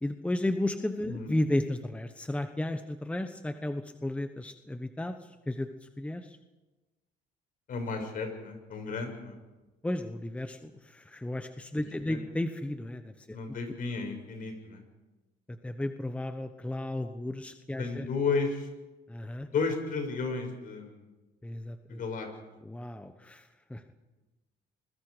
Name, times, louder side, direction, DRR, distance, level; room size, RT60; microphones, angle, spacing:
voice 1, 0.0-5.2 5.5-6.4 9.8-13.3 15.5-18.1 19.1-19.5 21.4-22.0 22.6-23.8, left 1 dB, 5° left, 8 dB, 1.1 m, -33 dB
voice 2, 7.7-9.4 11.9-12.2 13.3-14.8 17.8-18.7 19.4-21.0 21.9-22.3, left 4 dB, 55° left, 5 dB, 6.7 m, -33 dB
28.0 x 22.0 x 5.1 m, 1.1 s
cardioid pair, 110°, 17 cm